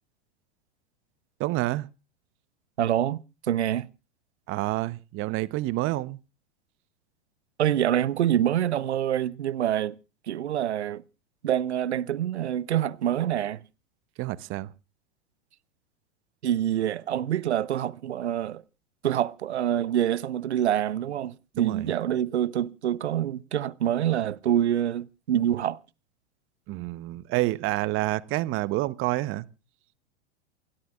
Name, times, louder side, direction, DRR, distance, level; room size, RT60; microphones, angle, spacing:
voice 1, 1.4-1.9 4.5-6.2 14.2-14.7 21.5-21.9 26.7-29.4, right 18 dB, 40° right, 0.9 m, -28 dB
voice 2, 2.8-3.2 3.5-3.9 7.6-10.0 10.3-11.0 11.4-13.6 16.4-18.6 19.0-25.8, right 11 dB, 80° right, 0.8 m, -26 dB
28.5 x 13.0 x 2.4 m
hypercardioid pair, 95°, 33 cm